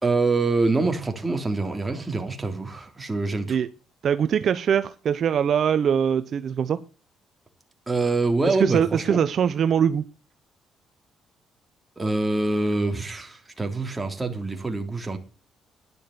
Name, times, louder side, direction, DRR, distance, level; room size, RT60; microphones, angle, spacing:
voice 1, 0.0-3.6 7.9-9.2 12.0-15.2, right 3 dB, 15° right, 3.5 m, -25 dB
voice 2, 4.0-6.8 8.5-10.0, right 8 dB, 60° right, 0.8 m, -22 dB
12.5 x 11.0 x 6.8 m
cardioid pair, 100°, 0 cm